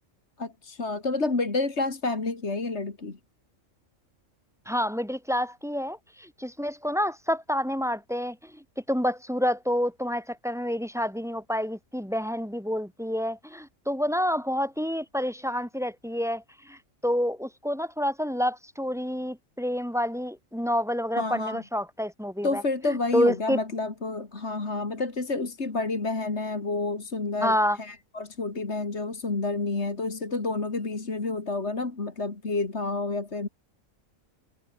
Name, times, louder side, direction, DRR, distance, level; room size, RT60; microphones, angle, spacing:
voice 1, 0.4-3.2 21.2-21.6 22.4-33.5, left 3 dB, 55° left, 3.1 m, -29 dB
voice 2, 4.7-22.6 23.1-23.6 27.4-27.8, equal, ahead, 2.2 m, -28 dB
omnidirectional pair, 1.4 m